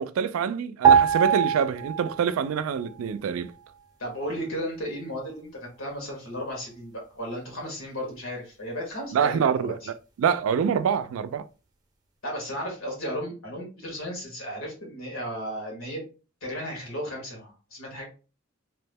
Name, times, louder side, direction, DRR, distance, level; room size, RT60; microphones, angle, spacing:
voice 1, 0.0-3.5 9.1-9.8 10.2-11.4, right 7 dB, 90° right, 0.3 m, -25 dB
sound 1, 0.8-2.5 2.7-3.0, right 8 dB, 20° right, 0.5 m, -21 dB
voice 2, 4.0-9.9 12.2-16.0 16.4-18.1, equal, 85° left, 1.5 m, -34 dB
3.0 x 2.1 x 3.3 m
head